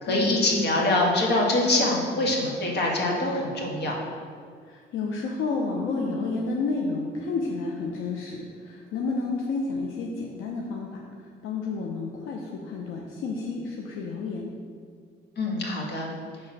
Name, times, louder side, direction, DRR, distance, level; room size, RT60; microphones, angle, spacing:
voice 1, 0.0-4.0 15.4-16.1, left 2 dB, 60° left, -1 dB, 1.6 m, -24 dB
voice 2, 4.6-14.5, left 3 dB, 85° left, 0 dB, 0.7 m, -31 dB
6.0 x 3.7 x 6.1 m, 2.1 s
cardioid pair, 90°, 20 cm